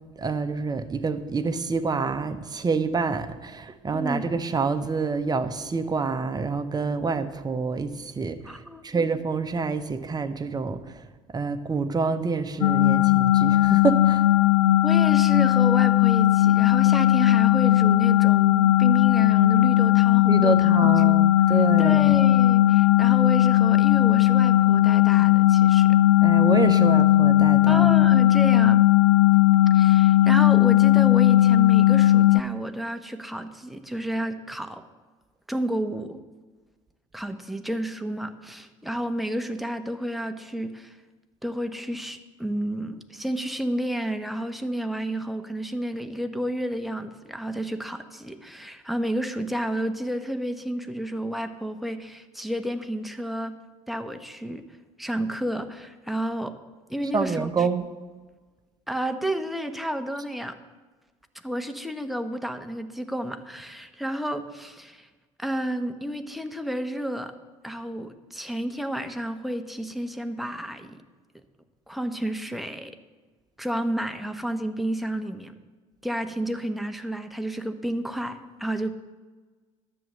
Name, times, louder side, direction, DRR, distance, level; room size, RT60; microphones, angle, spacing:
voice 1, 0.2-8.5 8.8-11.0 11.3-14.2 20.3-22.1 26.2-27.9 57.1-57.9, right 4 dB, 25° right, 9 dB, 1.0 m, -27 dB
voice 2, 3.9-4.2 8.4-9.0 14.8-20.8 21.0-25.9 27.7-28.8 29.7-34.8 35.5-36.2 37.1-41.0 41.4-53.6 53.9-54.6 55.0-56.6 56.9-57.7 58.9-60.5 61.4-65.1 65.4-67.3 67.6-71.0 71.9-73.0 73.6-75.5 76.0-79.0, right 1 dB, ahead, 7 dB, 1.1 m, -31 dB
sound 1, 12.6-32.4, left 15 dB, 70° left, 0.5 m, -18 dB
10.5 x 7.7 x 7.0 m, 1.3 s
hypercardioid pair, 65°, 17 cm